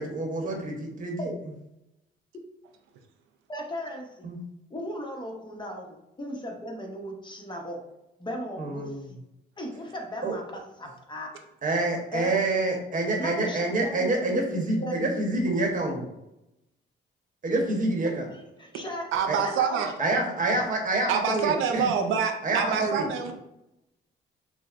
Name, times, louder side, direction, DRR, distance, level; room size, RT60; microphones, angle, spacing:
voice 1, 0.0-1.3 4.2-4.4 8.6-9.0 10.2-10.3 11.6-16.0 17.4-18.2 19.3-19.4 20.0-21.9 22.4-23.1, right 2 dB, 40° right, 2 dB, 1.0 m, -27 dB
voice 2, 3.5-4.3 4.7-7.8 8.2-9.2 9.6-11.3 12.1-12.3 13.2-14.4 14.8-15.0 18.3-19.1 19.4-20.1, equal, 25° left, 1 dB, 0.8 m, -37 dB
voice 3, 19.1-19.9 21.1-23.3, right 6 dB, 90° right, 5 dB, 0.5 m, -26 dB
6.0 x 2.1 x 2.4 m, 0.87 s
cardioid pair, 90°, 20 cm